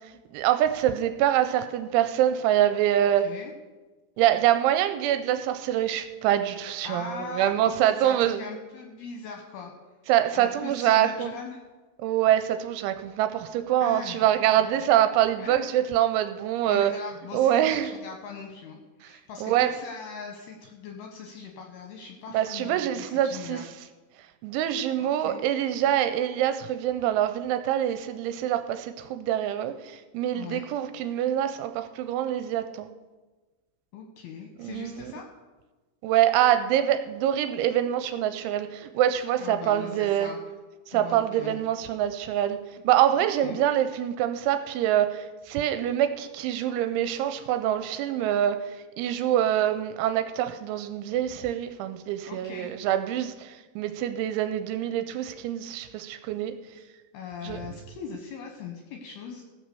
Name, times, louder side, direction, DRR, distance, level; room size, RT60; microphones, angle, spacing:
voice 1, 0.3-3.2 4.2-8.4 10.1-11.3 12.0-16.9 17.3-17.9 19.0-19.1 19.4-19.7 22.3-23.6 24.4-32.9 34.6-35.1 36.0-40.3 40.9-42.6 42.8-48.6 49.0-56.5 57.4-57.6, right 11 dB, 85° right, 9 dB, 2.9 m, -25 dB
voice 2, 3.0-3.5 6.8-9.7 10.3-11.6 13.8-14.7 15.4-15.9 16.6-23.9 25.0-25.5 30.3-30.7 33.9-35.3 39.4-40.4 40.9-41.6 43.1-43.6 52.2-52.8 56.7-56.9 57.1-59.4, left 5 dB, 75° left, 2 dB, 2.4 m, -40 dB
15.5 x 6.3 x 6.8 m, 1.2 s
omnidirectional pair, 5.6 m